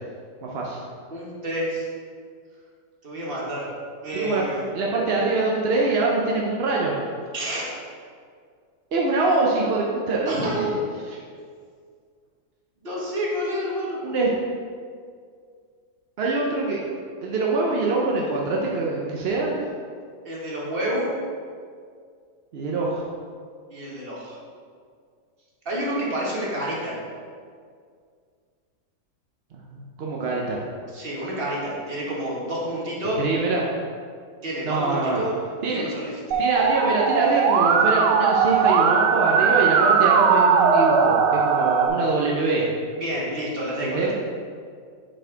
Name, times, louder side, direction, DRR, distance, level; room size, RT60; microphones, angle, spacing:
voice 1, 0.4-0.8 4.1-4.4 4.7-6.9 8.9-10.7 14.0-14.3 16.2-16.9 17.2-19.5 22.5-23.1 29.5-30.6 33.2-33.7 34.6-35.2 35.6-35.8 36.4-42.7 43.8-44.1, right 3 dB, 60° right, -3 dB, 0.6 m, -24 dB
voice 2, 1.1-1.9 3.0-3.7 4.0-4.6 7.3-7.7 9.3-9.5 10.2-10.8 12.8-14.0 20.2-21.1 23.7-24.4 25.6-27.0 30.9-33.2 34.4-35.3 35.7-36.2 43.0-44.1, equal, 35° right, -5 dB, 1.4 m, -29 dB
Musical instrument, 36.3-41.9, right 6 dB, 90° right, 1.2 m, -19 dB
6.3 x 4.3 x 4.5 m, 2.1 s
omnidirectional pair, 1.8 m